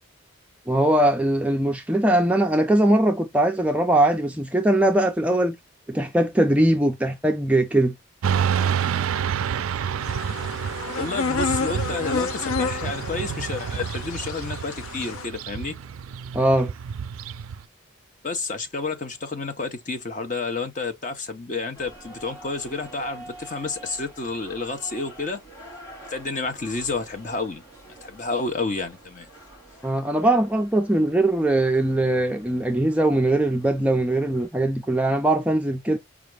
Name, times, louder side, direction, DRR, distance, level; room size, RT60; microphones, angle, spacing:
voice 1, 0.7-5.6 5.9-7.9 16.3-16.7 29.8-36.0, right 1 dB, 5° right, 0.4 m, -21 dB
Motorcycle / Traffic noise roadway noise, 8.2-17.6, right 7 dB, 80° right, 0.3 m, -29 dB
sound 1, 10.0-15.3, left 5 dB, 80° left, 0.4 m, -30 dB
voice 2, 11.0-15.7 18.2-25.4 26.1-27.6 28.0-29.3, left 3 dB, 35° left, 0.7 m, -30 dB
sound 2, 21.7-34.5, right 1 dB, 20° left, 3.5 m, -47 dB
4.9 x 2.4 x 3.2 m
head